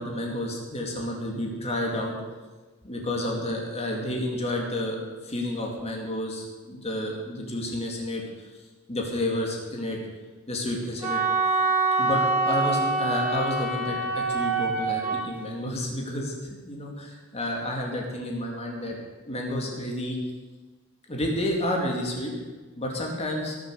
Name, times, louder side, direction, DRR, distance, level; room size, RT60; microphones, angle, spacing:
voice 1, 0.0-2.1 2.8-8.6 8.9-10.0 10.5-11.2 12.0-19.0 19.2-20.2 21.1-22.3 22.8-23.6, left 1 dB, 30° left, -1 dB, 2.5 m, -30 dB
Wind instrument woodwind instrument, 11.0-15.2, right 3 dB, 10° right, 2.7 m, -25 dB
18.5 x 7.2 x 7.0 m, 1.3 s
head